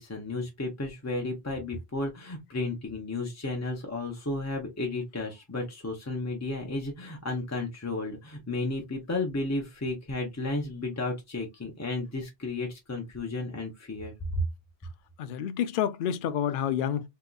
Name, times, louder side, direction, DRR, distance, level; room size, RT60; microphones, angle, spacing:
voice 1, 0.0-14.4, left 2 dB, 20° left, 0.4 m, -33 dB
voice 2, 15.2-17.1, left 9 dB, 60° left, 0.6 m, -29 dB
3.6 x 2.8 x 2.3 m
omnidirectional pair, 1.0 m